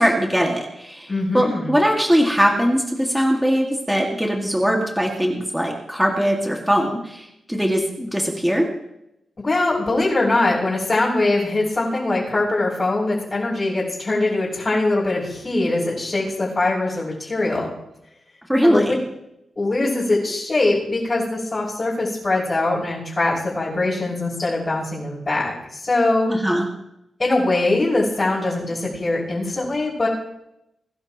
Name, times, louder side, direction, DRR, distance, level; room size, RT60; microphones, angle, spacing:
voice 1, 0.0-8.7 18.5-19.0 26.3-26.6, equal, 5° right, 0 dB, 2.2 m, -20 dB
voice 2, 1.1-1.7 9.4-17.7 18.6-18.8 19.6-26.3 27.2-30.1, left 2 dB, 30° left, -10 dB, 6.3 m, -22 dB
23.5 x 11.5 x 3.1 m, 0.84 s
wide cardioid pair, 100°, 0 cm